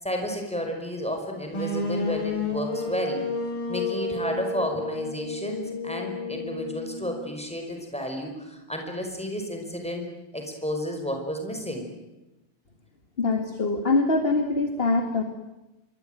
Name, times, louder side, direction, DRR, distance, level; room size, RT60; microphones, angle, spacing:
voice 1, 0.0-3.2 3.7-10.1 10.3-11.9, equal, 5° left, 3 dB, 5.5 m, -32 dB
sound 1, 1.5-7.4, left 3 dB, 90° left, 5.8 m, -31 dB
voice 2, 13.2-15.2, left 3 dB, 30° left, 6 dB, 2.0 m, -23 dB
27.0 x 23.0 x 9.3 m, 1.0 s
omnidirectional pair, 2.2 m